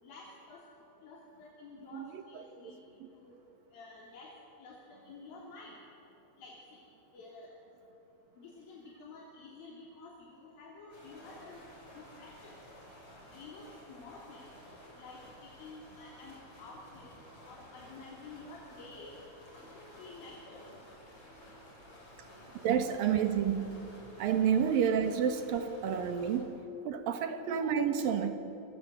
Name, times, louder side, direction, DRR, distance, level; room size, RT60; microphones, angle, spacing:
voice 1, 0.0-0.6 1.0-2.8 3.1-3.3 3.7-5.8 6.4-6.8 7.1-7.5 8.4-12.6 13.3-14.5 15.0-17.1 17.5-19.1 19.7-20.6, left 3 dB, 80° left, -3 dB, 4.9 m, -51 dB
sound 1, 10.9-26.4, equal, 40° left, 7.9 m, -54 dB
voice 2, 22.5-23.9 24.2-26.6 26.8-28.3, right 8 dB, 75° right, 7 dB, 3.3 m, -29 dB
29.0 x 24.0 x 8.2 m, 3.0 s
omnidirectional pair, 4.1 m